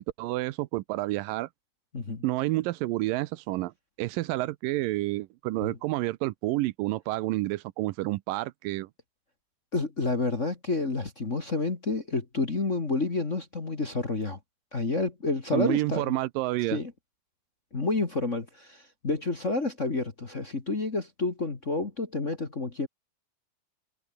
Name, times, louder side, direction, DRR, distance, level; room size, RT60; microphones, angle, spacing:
voice 1, 0.0-1.5 2.2-3.7 4.0-8.9 15.5-16.8, right 18 dB, 85° right, 2.3 m, -29 dB
voice 2, 9.7-14.4 14.7-16.2 16.7-16.9 17.7-22.9, left 3 dB, 30° left, 1.7 m, -29 dB
omnidirectional pair, 4.1 m